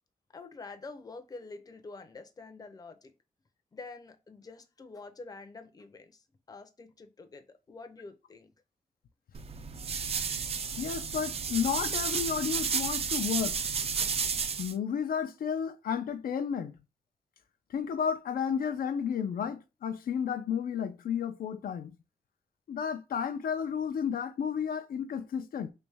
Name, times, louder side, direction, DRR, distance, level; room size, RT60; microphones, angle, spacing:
voice 1, 0.3-3.1 3.7-8.5, left 3 dB, 25° left, 0.5 m, -47 dB
sound 1, 9.3-14.7, right 6 dB, 45° right, 0.4 m, -32 dB
voice 2, 10.8-13.6 14.6-16.7 17.7-21.9 22.7-25.7, left 7 dB, 90° left, 0.5 m, -32 dB
3.3 x 3.0 x 3.3 m
wide cardioid pair, 165°, 14 cm